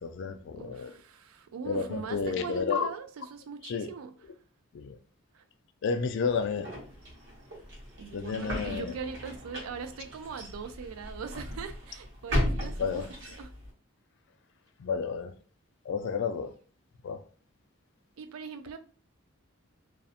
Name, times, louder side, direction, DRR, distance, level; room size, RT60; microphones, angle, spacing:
voice 1, 0.0-0.9 1.6-2.9 3.6-3.9 4.7-5.0 5.8-6.7 8.1-9.0 12.8-13.1 14.8-15.3 15.9-16.5 17.0-17.2, left 5 dB, 60° left, 0.3 m, -31 dB
voice 2, 0.5-4.3 5.3-5.4 8.0-13.5 18.2-18.8, right 6 dB, 85° right, 0.4 m, -41 dB
sound 1, 6.2-13.7, equal, 60° right, 1.0 m, -36 dB
2.4 x 2.0 x 2.7 m
head